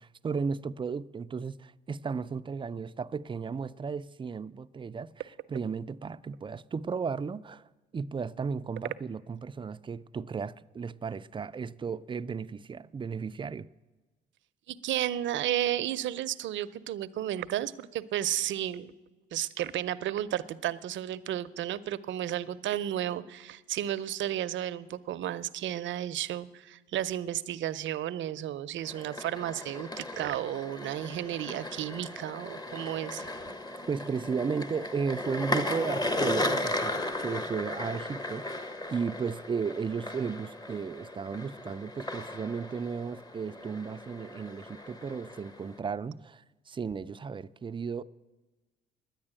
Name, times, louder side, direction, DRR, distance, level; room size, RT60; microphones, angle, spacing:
voice 1, 0.0-7.6 7.9-13.7 33.9-48.0, right 5 dB, 25° right, 0.4 m, -35 dB
voice 2, 14.7-18.9 19.3-33.2, right 12 dB, 70° right, 0.6 m, -33 dB
sound 1, 28.8-45.8, left 1 dB, 20° left, 1.0 m, -36 dB
10.5 x 9.8 x 8.8 m
cardioid pair, 90°, 20 cm